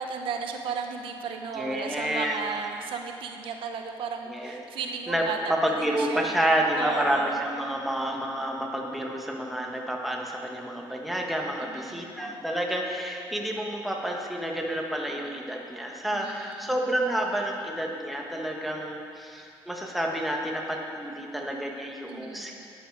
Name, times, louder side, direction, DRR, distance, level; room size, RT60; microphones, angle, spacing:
voice 1, 0.0-7.4 11.6-12.4 16.1-16.7 22.1-22.7, right 6 dB, 80° right, 4 dB, 1.0 m, -35 dB
voice 2, 1.5-2.4 4.3-4.6 5.1-22.5, right 1 dB, ahead, -1 dB, 1.4 m, -29 dB
12.0 x 9.9 x 4.7 m, 2.6 s
cardioid pair, 115°, 9 cm